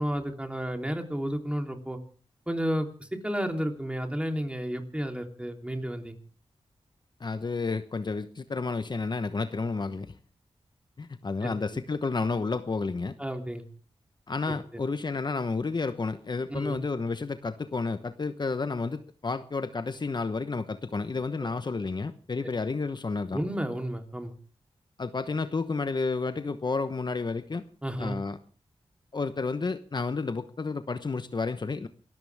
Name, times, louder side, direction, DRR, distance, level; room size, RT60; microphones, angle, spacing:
voice 1, 0.0-2.0 2.5-6.2 11.4-11.5 13.2-13.6 16.5-16.8 23.3-24.3 27.8-28.2, equal, 10° right, 4 dB, 3.3 m, -32 dB
voice 2, 7.2-10.1 11.0-13.2 14.3-23.4 25.0-27.7 28.0-28.4 29.1-31.9, left 4 dB, 45° left, 10 dB, 1.0 m, -31 dB
28.5 x 14.0 x 3.5 m, 0.41 s
cardioid pair, 60°, 11 cm